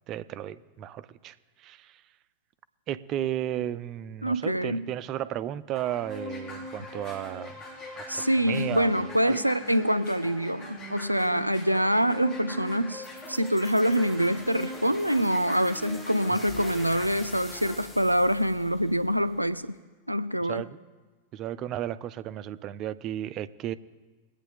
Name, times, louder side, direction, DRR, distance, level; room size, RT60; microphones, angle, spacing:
voice 1, 0.1-1.3 1.6-1.9 2.9-7.6 8.0-8.9 9.3-9.4 20.5-20.8 21.3-23.7, right 12 dB, 35° right, 15 dB, 0.5 m, -34 dB
voice 2, 4.2-4.9 8.1-19.8 20.1-20.6, equal, 90° right, 13 dB, 0.5 m, -25 dB
sound 1, 5.7-17.7, left 1 dB, 35° left, 3.5 m, -41 dB
sound 2, 13.0-19.6, left 1 dB, 10° left, 2.2 m, -48 dB
22.0 x 8.8 x 3.7 m, 1.3 s
figure-of-eight pair, 90°, 0 cm